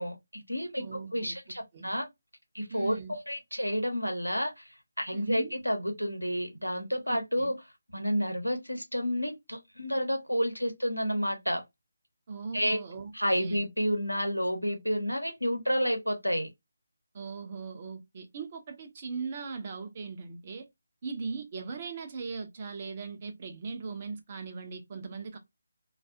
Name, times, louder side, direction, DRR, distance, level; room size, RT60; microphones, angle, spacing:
voice 1, 0.0-0.8 1.1-2.0 2.5-4.7 5.0-7.5 7.9-11.6 12.5-12.8 13.1-16.5, equal, 90° left, 0.8 m, -30 dB
voice 2, 0.8-1.4 1.7-1.9 2.7-3.2 5.1-5.5 7.1-7.5 12.3-13.1 13.4-13.6 17.1-20.7 21.0-25.4, right 4 dB, 30° right, 0.5 m, -39 dB
2.3 x 2.3 x 2.5 m
figure-of-eight pair, 155°, 0 cm